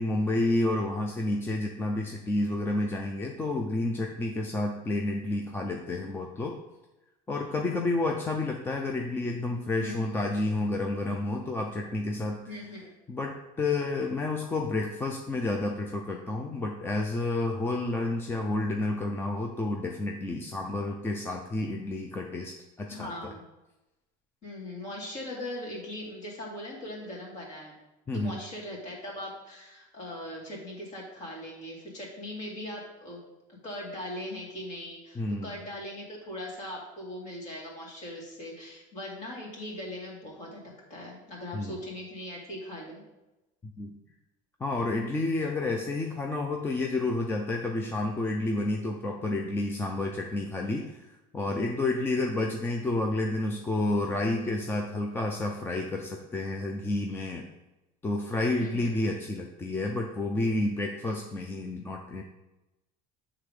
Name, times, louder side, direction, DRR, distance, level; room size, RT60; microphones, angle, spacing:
voice 1, 0.0-6.6 7.3-12.4 13.1-23.3 28.1-28.4 35.2-35.5 41.5-41.8 43.6-43.9 44.6-57.4 58.0-62.2, left 2 dB, 10° left, 1 dB, 0.4 m, -30 dB
voice 2, 12.5-13.0 22.9-23.4 24.4-27.7 28.1-33.2 33.5-40.6 40.9-43.0 58.6-58.9, left 1 dB, 40° left, -3 dB, 2.2 m, -40 dB
8.0 x 3.7 x 4.9 m, 1.0 s
cardioid pair, 150°, 18 cm